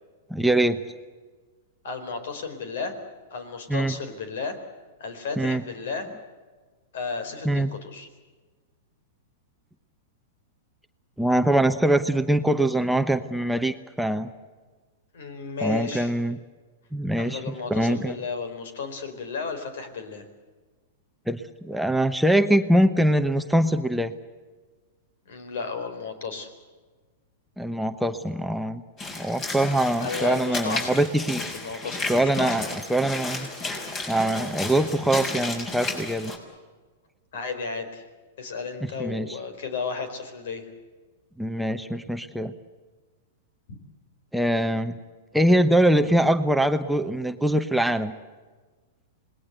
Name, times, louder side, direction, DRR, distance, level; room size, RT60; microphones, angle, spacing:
voice 1, 0.3-0.8 3.7-3.9 5.4-5.6 7.4-7.7 11.2-14.3 15.6-16.4 16.9-18.2 21.3-24.1 27.6-28.8 29.2-31.4 32.1-33.5 34.1-36.3 39.0-39.4 41.4-42.5 44.3-45.0 45.3-48.1, right 1 dB, ahead, 7 dB, 1.0 m, -23 dB
voice 2, 1.8-3.0 3.3-4.6 5.0-6.1 6.9-8.1 15.1-16.1 17.2-20.2 25.3-26.5 30.0-31.0 31.5-32.6 37.3-38.0 38.4-40.7 43.7-43.8, left 4 dB, 70° left, 10 dB, 4.3 m, -33 dB
Walk footsteps / Splash splatter, 29.0-36.4, left 2 dB, 30° left, 5.9 m, -33 dB
27.0 x 20.0 x 8.1 m, 1.4 s
hypercardioid pair, 115°, 0 cm